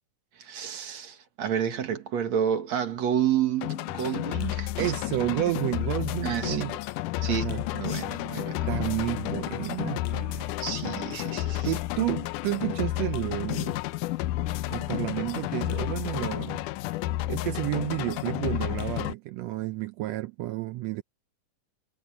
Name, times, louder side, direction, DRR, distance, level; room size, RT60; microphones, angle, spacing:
voice 1, 0.4-4.9 6.2-6.6 7.2-8.7 10.6-11.7, right 9 dB, 60° right, 3.0 m, -30 dB
sound 1, 3.6-19.1, left 16 dB, 85° left, 2.2 m, -31 dB
voice 2, 4.8-6.8 7.3-7.6 8.5-10.5 11.6-13.8 14.7-16.6 17.3-21.0, right 17 dB, 85° right, 1.5 m, -31 dB
omnidirectional pair, 3.6 m